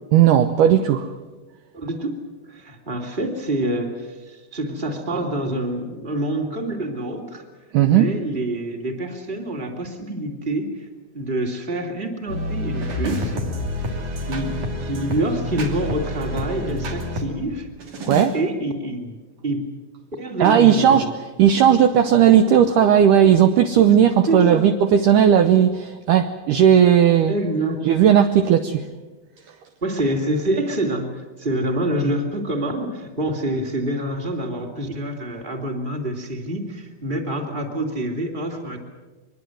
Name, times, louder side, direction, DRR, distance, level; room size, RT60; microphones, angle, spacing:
voice 1, 0.1-1.1 7.7-8.1 18.0-18.4 20.4-21.1 21.4-27.3 27.8-28.8, right 9 dB, 80° right, 8 dB, 1.9 m, -15 dB
voice 2, 1.7-2.2 2.4-7.4 7.8-10.9 11.1-13.5 13.9-14.0 14.3-17.7 18.3-19.2 19.4-19.7 20.1-21.1 24.3-24.7 27.3-27.9 29.8-38.8, right 1 dB, 15° right, 3 dB, 2.2 m, -26 dB
sound 1, 12.3-17.3 17.8-18.3, left 1 dB, 50° right, 3.9 m, -28 dB
24.0 x 21.5 x 7.8 m, 1.2 s
omnidirectional pair, 4.7 m